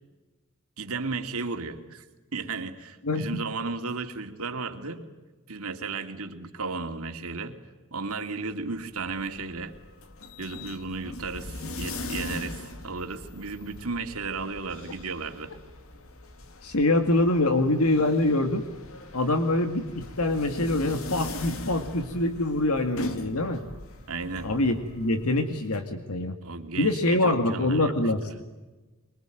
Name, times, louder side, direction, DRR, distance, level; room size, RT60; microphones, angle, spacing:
voice 1, 0.8-2.0 2.3-5.0 5.5-7.6 7.9-9.7 10.4-15.5 24.1-24.5 26.4-27.9, right 4 dB, 80° right, 6 dB, 2.5 m, -34 dB
Elevator complete, 8.7-25.8, left 2 dB, 70° left, 2.3 m, -40 dB
voice 2, 16.6-18.7 19.1-23.6 24.4-26.4 26.8-28.4, left 2 dB, 90° left, 7 dB, 2.1 m, -25 dB
24.5 x 24.0 x 9.2 m, 1.2 s
head